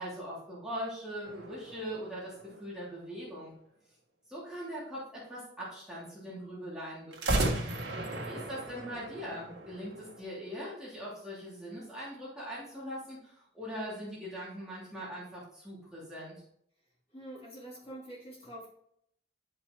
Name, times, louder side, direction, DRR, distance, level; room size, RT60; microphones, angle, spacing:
voice 1, 0.0-3.5 4.3-7.6 8.2-16.4, equal, 5° right, -8 dB, 2.8 m, -41 dB
sound 1, 1.2-3.0 7.1-10.2, right 2 dB, 65° right, 1.7 m, -35 dB
voice 2, 8.1-8.5 17.1-18.7, right 1 dB, 30° left, -6 dB, 3.0 m, -46 dB
11.0 x 5.7 x 3.1 m, 0.70 s
head